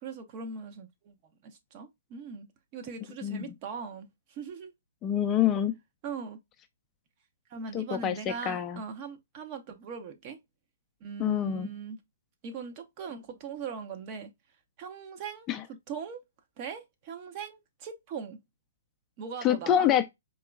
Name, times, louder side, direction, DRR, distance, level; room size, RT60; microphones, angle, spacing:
voice 1, 0.0-1.1 1.4-2.5 2.7-4.7 6.0-6.4 7.5-10.4 11.0-12.0 12.4-14.3 14.8-16.2 16.6-18.4 19.2-19.9, right 6 dB, 35° right, 0.9 m, -40 dB
voice 2, 3.2-3.5 5.0-5.7 7.7-8.8 11.2-11.7 15.5-15.6 19.4-20.1, left 10 dB, 25° left, 0.5 m, -26 dB
4.6 x 3.0 x 2.3 m
figure-of-eight pair, 125°, 0 cm